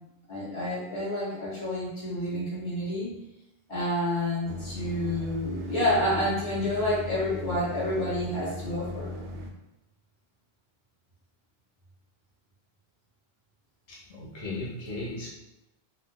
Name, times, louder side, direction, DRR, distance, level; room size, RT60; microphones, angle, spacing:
voice 1, 0.3-3.1 3.7-9.1, left 1 dB, 80° left, -7 dB, 1.5 m, -29 dB
sound 1, 4.4-9.5, left 1 dB, 45° right, 0.4 m, -38 dB
voice 2, 13.9-15.3, left 2 dB, 40° left, -6 dB, 0.7 m, -36 dB
3.9 x 2.2 x 2.3 m, 0.93 s
omnidirectional pair, 1.1 m